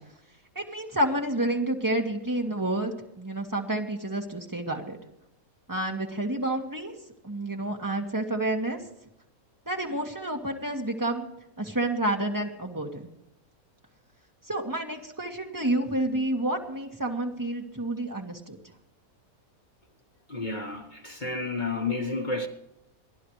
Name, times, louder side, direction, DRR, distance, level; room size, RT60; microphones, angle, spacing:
voice 1, 0.6-5.0 5.7-6.9 7.2-8.8 9.7-11.3 11.6-13.1 14.5-18.6, right 1 dB, 15° right, 1.7 m, -29 dB
voice 2, 20.3-22.5, left 3 dB, 30° left, 1.5 m, -31 dB
29.0 x 11.0 x 3.3 m
omnidirectional pair, 1.6 m